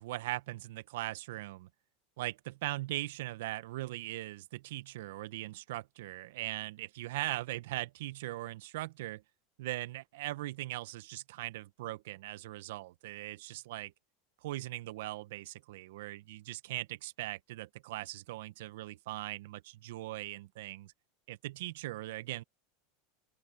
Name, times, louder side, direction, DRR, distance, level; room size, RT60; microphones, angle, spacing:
voice 1, 0.0-1.7 2.2-9.2 9.6-13.9 14.4-20.9 21.3-22.4, right 17 dB, 70° right, 1.4 m, -40 dB
open air
hypercardioid pair, 95°, 0 cm